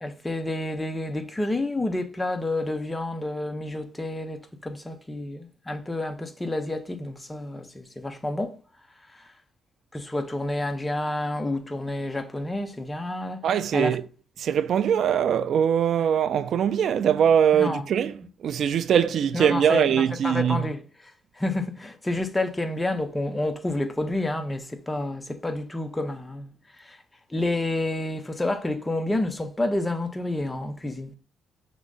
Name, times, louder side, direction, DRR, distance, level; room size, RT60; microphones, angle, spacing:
voice 1, 0.0-8.6 9.1-9.3 9.9-13.4 13.7-14.0 17.5-17.8 19.3-20.8 21.3-27.0 27.3-31.1, left 2 dB, 15° left, 0.7 m, -29 dB
voice 2, 13.4-14.0 14.4-18.2 18.4-20.7, right 8 dB, 65° right, 0.3 m, -22 dB
6.0 x 2.1 x 3.8 m
cardioid pair, 90°, 0 cm